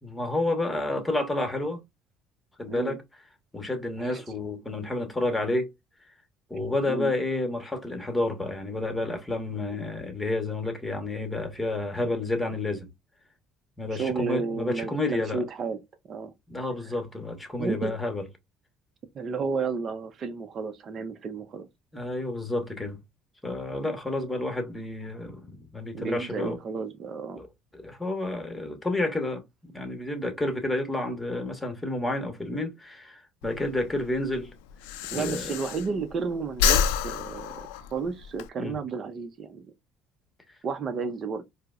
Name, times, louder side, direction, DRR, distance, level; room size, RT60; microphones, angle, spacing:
voice 1, 0.0-1.8 2.6-3.0 3.5-5.7 6.5-12.9 13.8-15.4 16.5-18.2 21.9-23.0 23.4-26.6 27.4-27.5 27.7-34.5 35.1-35.6 38.6-38.8, left 2 dB, 15° left, 1.1 m, -30 dB
voice 2, 13.9-15.8 16.1-16.3 17.6-17.9 19.1-21.7 25.9-27.4 35.1-39.7 40.6-41.5, right 5 dB, 45° right, 0.6 m, -32 dB
Breathing, 33.4-36.2 36.5-38.5, left 8 dB, 85° left, 0.3 m, -28 dB
4.5 x 2.1 x 2.4 m
supercardioid pair, 80°, 0 cm